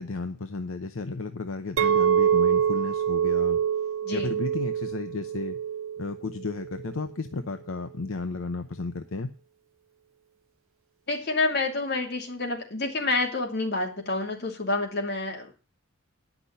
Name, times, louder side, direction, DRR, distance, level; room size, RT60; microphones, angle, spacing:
voice 1, 0.0-3.6 4.1-5.6 6.0-9.3, left 3 dB, 75° left, 8 dB, 0.8 m, -33 dB
Chink clink, 1.8-7.0, right 8 dB, 75° right, 0.7 m, -25 dB
voice 2, 4.0-4.3 11.1-15.5, left 3 dB, 50° left, 1 dB, 2.8 m, -28 dB
10.0 x 6.0 x 8.1 m, 0.35 s
head